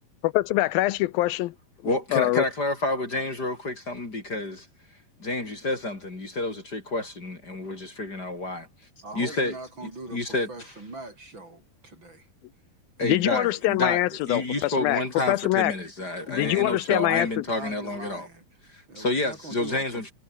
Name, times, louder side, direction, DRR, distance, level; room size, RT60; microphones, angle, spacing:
voice 1, 0.2-1.5 2.1-2.4 13.0-15.0 15.3-15.7 16.3-17.4, left 17 dB, 85° left, 2.5 m, -24 dB
voice 2, 1.8-4.7 5.2-8.7 9.2-9.6 10.1-10.5 13.0-14.0 14.3-18.3 18.7-20.1, left 2 dB, 25° left, 4.2 m, -29 dB
voice 3, 9.0-12.3 13.0-13.9 16.2-18.4 18.9-20.1, right 2 dB, 30° right, 6.3 m, -42 dB
omnidirectional pair, 4.2 m